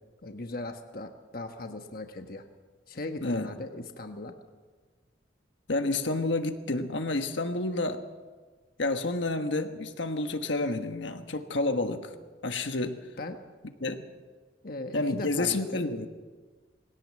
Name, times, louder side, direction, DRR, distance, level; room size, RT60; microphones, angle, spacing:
voice 1, 0.2-2.4 2.9-4.3 13.2-13.4 14.6-15.8, left 2 dB, 50° left, 5 dB, 1.2 m, -38 dB
voice 2, 5.7-8.0 8.8-12.1 12.4-13.0 13.8-14.0 14.9-16.1, left 2 dB, 75° left, 7 dB, 1.3 m, -29 dB
21.0 x 17.0 x 7.6 m, 1.4 s
head